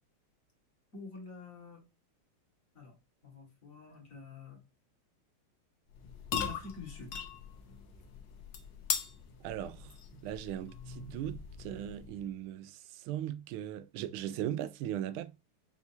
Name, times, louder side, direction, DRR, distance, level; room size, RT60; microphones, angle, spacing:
voice 1, 0.9-1.8 2.7-2.9 3.2-4.6 6.4-7.1, left 4 dB, 40° left, 2.0 m, -48 dB
sound 1, 5.9-12.3, left 7 dB, 65° left, 1.4 m, -40 dB
voice 2, 9.4-9.9 10.2-15.4, right 11 dB, 80° right, 1.4 m, -38 dB
5.8 x 2.9 x 2.7 m
omnidirectional pair, 2.3 m